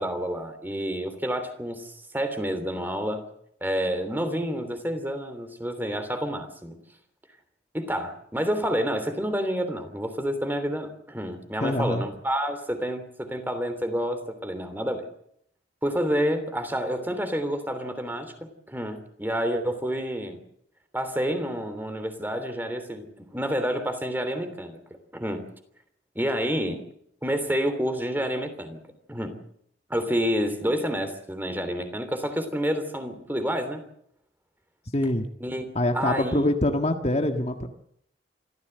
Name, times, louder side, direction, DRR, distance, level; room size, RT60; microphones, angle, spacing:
voice 1, 0.0-3.2 3.6-6.8 7.7-15.1 15.8-20.4 20.9-24.8 25.1-25.5 26.1-26.8 27.2-28.8 29.1-29.4 29.9-33.8 35.4-35.6 35.9-36.5, equal, 10° right, 9 dB, 3.1 m, -29 dB
voice 2, 11.6-12.0 34.9-35.3 35.8-37.7, left 1 dB, 35° left, 5 dB, 1.6 m, -24 dB
26.0 x 14.5 x 8.0 m, 0.70 s
head